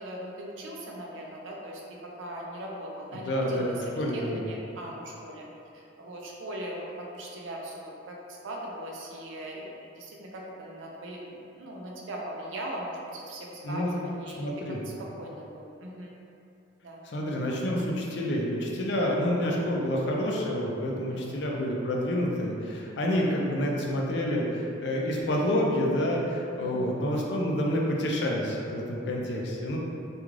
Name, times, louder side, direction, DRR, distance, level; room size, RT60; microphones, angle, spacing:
voice 1, 0.0-16.1 16.8-17.0 21.1-21.4 23.1-23.2 26.6-26.9, right 1 dB, 80° right, -2 dB, 0.5 m, -40 dB
voice 2, 3.1-4.5 13.6-13.9 14.4-14.8 17.1-29.8, equal, 60° left, -2 dB, 0.4 m, -28 dB
2.4 x 2.4 x 3.1 m, 2.6 s
head